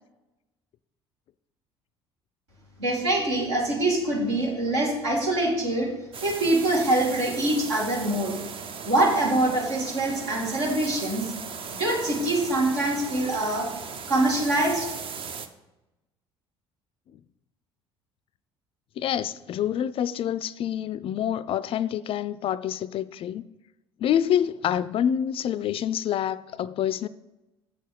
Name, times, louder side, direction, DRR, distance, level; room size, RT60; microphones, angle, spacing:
voice 1, 2.8-5.9 6.2-8.4 8.8-11.3 11.8-13.7 14.1-14.9, right 1 dB, 75° right, 2.5 m, -24 dB
sound 1, 6.1-15.5, right 6 dB, 40° right, 0.7 m, -38 dB
voice 2, 19.0-23.4 24.0-27.1, left 10 dB, 40° left, 0.4 m, -27 dB
7.5 x 6.7 x 4.8 m
figure-of-eight pair, 60°, 14 cm